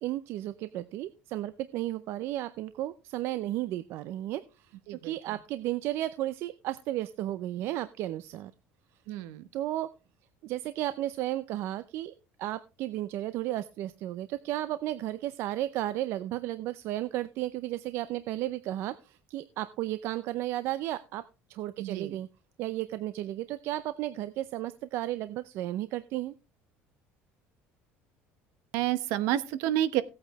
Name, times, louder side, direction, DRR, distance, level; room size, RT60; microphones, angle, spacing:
voice 1, 0.0-8.5 9.1-9.2 9.5-9.9 10.4-12.1 12.4-21.2 21.5-22.3 22.6-26.3, right 14 dB, 60° right, 14 dB, 0.6 m, -34 dB
voice 2, 9.1-9.4 21.8-22.1 28.7-30.0, right 12 dB, 80° right, 14 dB, 1.0 m, -29 dB
16.5 x 8.7 x 3.1 m, 0.29 s
cardioid pair, 145°, 5 cm